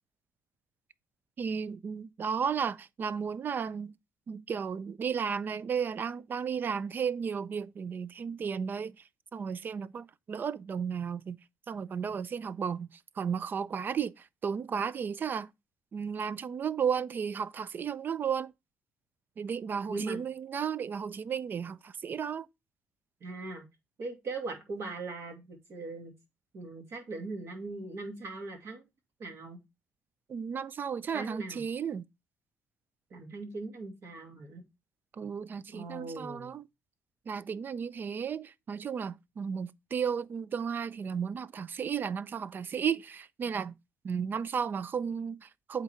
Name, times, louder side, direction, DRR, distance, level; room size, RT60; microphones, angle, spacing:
voice 1, 1.4-4.0 4.3-9.0 9.3-11.4 11.7-15.5 15.9-18.5 19.4-22.5 30.3-32.1 35.2-36.7 37.3-43.7 44.0-45.8, right 7 dB, 40° right, 0.4 m, -34 dB
voice 2, 19.9-20.2 23.2-23.6 24.0-26.1 26.5-28.8 29.2-29.6 31.1-31.6 33.1-34.7 35.7-36.5, right 3 dB, 55° right, 2.2 m, -40 dB
8.1 x 3.9 x 4.4 m
cardioid pair, 105°, 5 cm